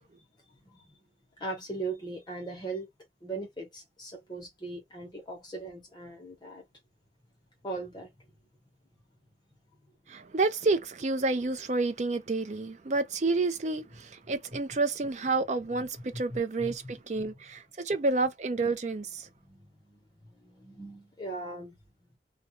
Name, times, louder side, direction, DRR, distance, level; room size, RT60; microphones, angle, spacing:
voice 1, 0.6-1.0 1.4-2.9 3.2-6.6 7.6-8.1 16.3-16.9 19.4-21.8, right 3 dB, 25° left, 0.9 m, -39 dB
voice 2, 10.1-19.3, right 3 dB, 40° right, 0.4 m, -29 dB
2.3 x 2.3 x 2.9 m
head